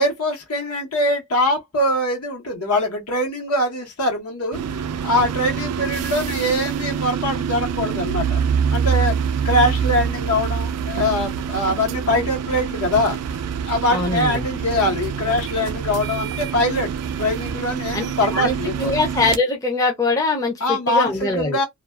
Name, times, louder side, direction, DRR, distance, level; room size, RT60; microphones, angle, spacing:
voice 1, 0.0-4.6 5.0-8.4 8.7-9.1 9.4-13.2 13.7-16.9 17.2-18.9 20.6-21.6, left 1 dB, 80° left, 1.0 m, -22 dB
sound 1, 4.5-19.4, right 7 dB, 90° right, 0.3 m, -25 dB
voice 2, 13.9-14.5 17.9-18.0 18.3-21.6, left 3 dB, 15° left, 0.5 m, -22 dB
2.4 x 2.3 x 2.3 m
head